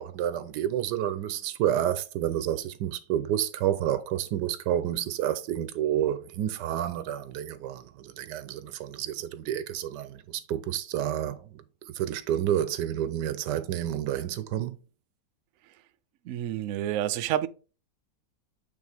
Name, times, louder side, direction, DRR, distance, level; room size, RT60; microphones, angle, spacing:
voice 1, 0.0-11.6 11.9-14.8, right 11 dB, 90° right, 1.3 m, -29 dB
voice 2, 16.2-17.5, right 12 dB, 70° right, 0.8 m, -29 dB
8.4 x 3.5 x 3.4 m
omnidirectional pair, 1.8 m